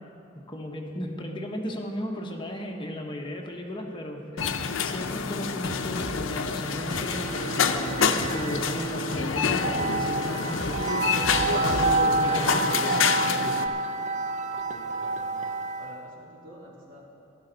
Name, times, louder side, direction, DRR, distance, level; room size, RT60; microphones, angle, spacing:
voice 1, 0.5-4.5 4.8-11.1 11.5-13.2, left 1 dB, 25° left, 1 dB, 1.1 m, -35 dB
sound 1, 4.4-13.7, left 6 dB, 80° left, 0.6 m, -28 dB
sound 2, 4.4-12.0, left 1 dB, 55° left, 1.2 m, -38 dB
sound 3, 6.6-16.0, right 3 dB, 40° right, 0.5 m, -29 dB
voice 2, 14.7-15.3 15.6-17.1, equal, 85° right, -4 dB, 3.0 m, -48 dB
15.0 x 12.0 x 4.0 m, 2.7 s
head